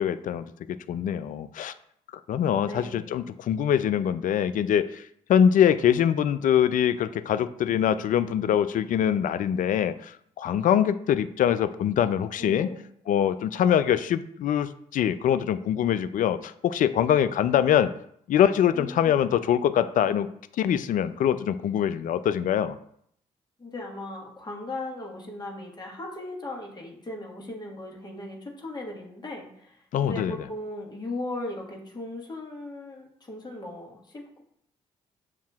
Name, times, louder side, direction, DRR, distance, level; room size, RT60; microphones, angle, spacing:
voice 1, 0.0-1.7 2.3-5.0 5.3-12.7 13.1-17.9 18.3-20.3 20.6-22.8 29.9-30.4, left 9 dB, 50° left, 13 dB, 0.4 m, -23 dB
voice 2, 2.6-3.3 12.4-12.9 18.7-19.3 23.6-34.4, left 2 dB, 25° left, -1 dB, 1.4 m, -38 dB
7.1 x 2.7 x 2.4 m, 0.69 s
hypercardioid pair, 45°, 17 cm